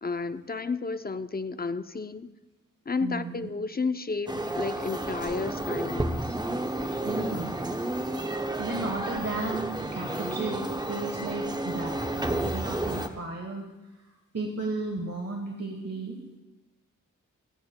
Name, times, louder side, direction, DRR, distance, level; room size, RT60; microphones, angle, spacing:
voice 1, 0.0-2.3 2.9-6.4, left 4 dB, 30° left, 11 dB, 0.5 m, -32 dB
voice 2, 3.0-3.5 7.0-7.6 8.6-13.6 14.3-16.4, right 3 dB, 50° right, 2 dB, 1.3 m, -34 dB
sound 1, 4.3-13.1, right 1 dB, 15° right, 0.7 m, -31 dB
27.5 x 9.5 x 2.2 m, 1.1 s
wide cardioid pair, 65°, 32 cm